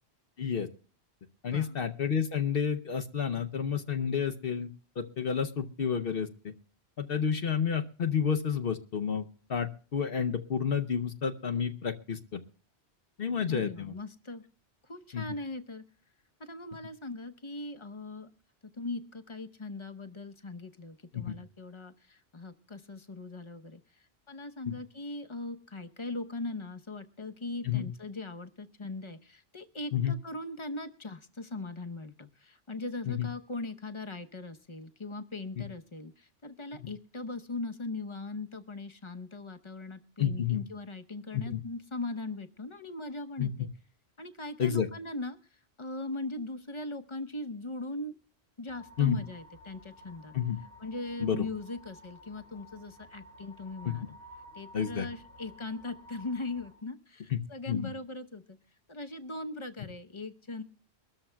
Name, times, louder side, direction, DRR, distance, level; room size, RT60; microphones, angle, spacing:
voice 1, 0.4-0.7 1.4-4.7 5.0-6.5 7.0-12.4 13.2-14.0 15.1-15.2 21.1-21.4 27.6-27.9 29.9-30.1 33.1-33.3 36.8-36.9 40.2-40.6 41.3-41.6 43.4-43.5 44.6-44.9 49.0-49.2 50.3-50.6 51.2-51.5 53.8-54.0 54.7-55.1 57.3-57.4 57.7-57.9, left 7 dB, 60° left, 7 dB, 0.9 m, -30 dB
voice 2, 1.4-1.8 13.5-14.4 14.8-15.8 16.4-18.3 18.6-23.8 24.3-43.7 44.2-45.4 45.8-48.2 48.6-50.3 50.8-54.1 54.5-58.6 58.9-60.6, left 2 dB, 30° left, 8 dB, 0.9 m, -40 dB
sound 1, 48.7-56.7, left 1 dB, 50° right, 4.7 m, -53 dB
23.5 x 13.0 x 2.3 m, 0.42 s
omnidirectional pair, 1.1 m